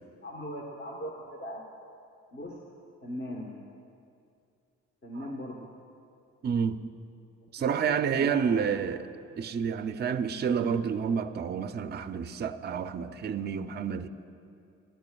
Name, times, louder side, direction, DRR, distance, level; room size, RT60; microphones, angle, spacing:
voice 1, 0.2-1.6 2.3-2.6 3.0-3.5 5.0-5.7 7.6-8.5, equal, 35° left, -1 dB, 1.2 m, -39 dB
voice 2, 6.4-6.8 7.5-9.1 9.4-14.1, right 7 dB, 35° right, 10 dB, 0.5 m, -29 dB
23.0 x 10.5 x 2.3 m, 2.5 s
cardioid pair, 90°, 30 cm